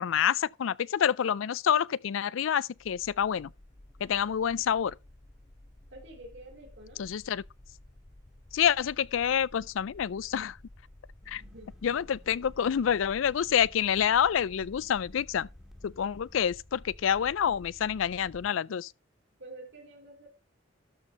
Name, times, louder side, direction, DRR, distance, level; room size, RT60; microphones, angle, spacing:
voice 1, 0.0-3.5 4.0-4.9 7.0-7.4 8.5-10.6 11.3-11.4 11.8-15.5 15.8-18.9, left 8 dB, 80° left, 0.4 m, -27 dB
sound 1, 2.8-18.5, left 1 dB, 20° left, 0.6 m, -53 dB
voice 2, 5.9-7.1 11.3-11.8 19.4-20.3, right 1 dB, 65° right, 3.8 m, -48 dB
sound 2, 11.2-16.5, equal, 5° right, 1.5 m, -57 dB
13.0 x 4.4 x 5.1 m
head